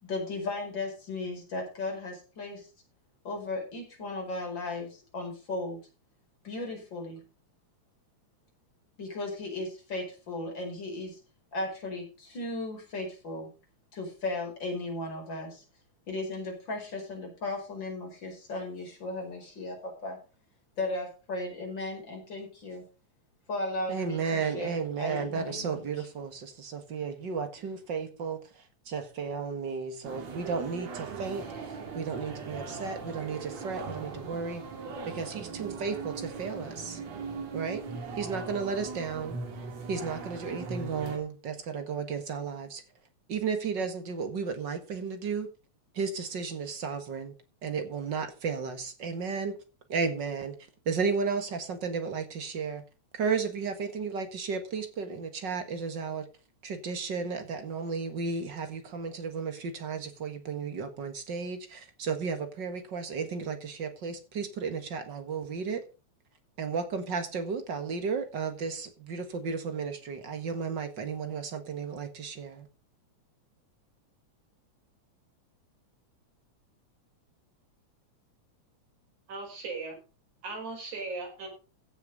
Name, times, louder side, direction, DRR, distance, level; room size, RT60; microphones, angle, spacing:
voice 1, 0.0-2.7 3.2-5.8 6.4-7.2 9.0-11.2 11.5-13.5 13.9-15.6 16.1-20.2 20.8-22.8 23.5-25.8, left 2 dB, 35° left, 5.6 m, -36 dB
voice 2, 23.9-34.6 35.1-37.0 37.5-37.8 38.2-39.4 39.9-42.8 43.3-45.5 45.9-47.3 47.6-49.6 49.9-50.5 50.9-52.8 53.1-56.3 56.6-65.8 66.6-72.7, right 5 dB, 45° right, 2.0 m, -33 dB
sound 1, 30.0-41.2, right 4 dB, 65° right, 3.4 m, -39 dB
voice 3, 79.3-80.0 80.4-81.5, right 3 dB, 80° right, 6.4 m, -37 dB
16.0 x 6.7 x 5.2 m
omnidirectional pair, 3.4 m